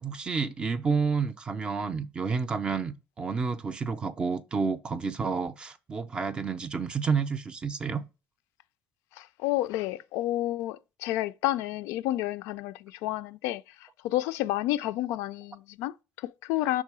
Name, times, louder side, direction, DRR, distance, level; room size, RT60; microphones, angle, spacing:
voice 1, 0.0-8.0, right 5 dB, 20° right, 0.4 m, -30 dB
voice 2, 9.2-13.6 14.0-16.8, left 15 dB, 75° left, 0.3 m, -30 dB
5.4 x 3.7 x 4.7 m
cardioid pair, 170°, 5 cm